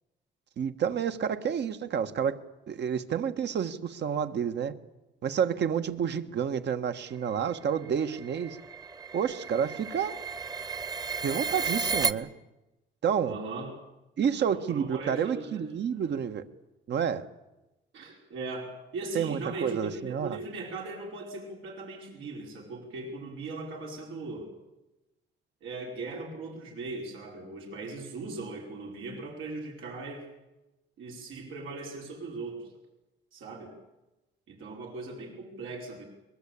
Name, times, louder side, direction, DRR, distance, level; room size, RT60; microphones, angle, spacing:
voice 1, 0.6-2.4 2.7-4.8 5.2-8.6 9.1-10.1 11.2-12.3 13.0-13.4 14.2-16.4 16.9-17.3 19.1-20.4, right 8 dB, 60° right, 9 dB, 1.5 m, -29 dB
sound 1, 7.4-12.1, right 5 dB, 20° right, 1.1 m, -33 dB
voice 2, 13.2-13.7 14.5-15.7 16.0-16.2 17.9-24.5 25.6-30.2 31.0-32.7 33.3-33.7 34.5-36.0, right 3 dB, 85° right, 0 dB, 5.4 m, -39 dB
22.5 x 21.0 x 8.5 m, 1.0 s
cardioid pair, 90°, 20 cm